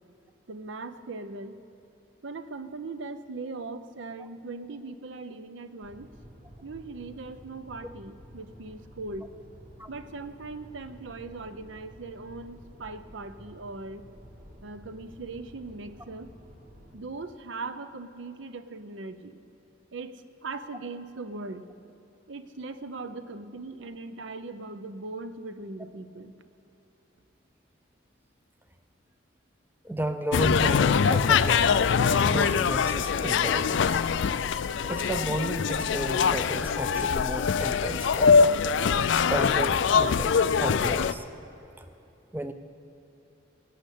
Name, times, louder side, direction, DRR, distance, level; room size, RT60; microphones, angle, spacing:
voice 1, 0.5-1.6 2.2-6.1 6.6-9.4 9.9-14.1 14.6-16.3 16.9-19.4 19.9-21.7 22.3-26.3, right 3 dB, 70° right, 11 dB, 0.7 m, -39 dB
sound 1, 5.8-16.9, equal, 40° right, 1.8 m, -51 dB
voice 2, 29.8-31.7 32.3-33.8 34.8-38.6 39.2-41.3 41.8-41.9 42.3-42.5, right 1 dB, 10° right, 8 dB, 0.4 m, -33 dB
sound 2, 30.3-41.1, left 6 dB, 70° left, 0.4 m, -23 dB
18.0 x 6.6 x 8.4 m, 2.9 s
head